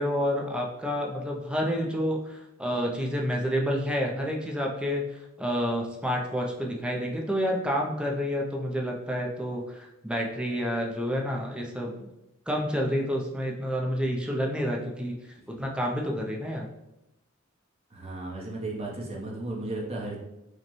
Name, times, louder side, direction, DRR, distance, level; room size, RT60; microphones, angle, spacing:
voice 1, 0.0-12.1 12.5-15.2 15.5-16.7, equal, 5° right, 0 dB, 0.5 m, -29 dB
voice 2, 17.9-20.2, right 2 dB, 30° right, -3 dB, 0.8 m, -34 dB
5.0 x 2.1 x 3.0 m, 0.92 s
head